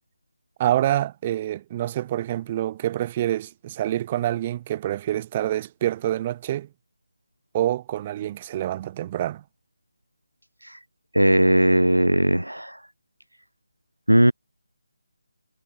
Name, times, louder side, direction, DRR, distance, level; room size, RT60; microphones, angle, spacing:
voice 1, 0.6-6.7 7.5-9.4, right 12 dB, 25° right, 0.6 m, -26 dB
voice 2, 11.1-12.8 14.1-14.3, right 1 dB, 90° right, 0.4 m, -18 dB
figure-of-eight pair, 155°, 0 cm